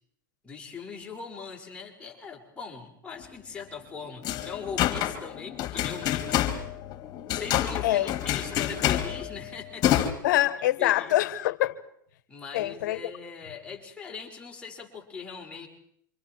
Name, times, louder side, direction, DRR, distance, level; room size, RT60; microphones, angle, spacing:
voice 1, 0.4-6.5 7.3-10.4 10.8-11.2 12.3-15.7, left 5 dB, 10° left, 5.9 m, -40 dB
sound 1, 4.2-10.1, left 12 dB, 40° left, 2.8 m, -28 dB
voice 2, 10.2-11.8 12.5-13.0, left 14 dB, 65° left, 1.5 m, -24 dB
27.5 x 26.0 x 4.7 m
hypercardioid pair, 105°, 11 cm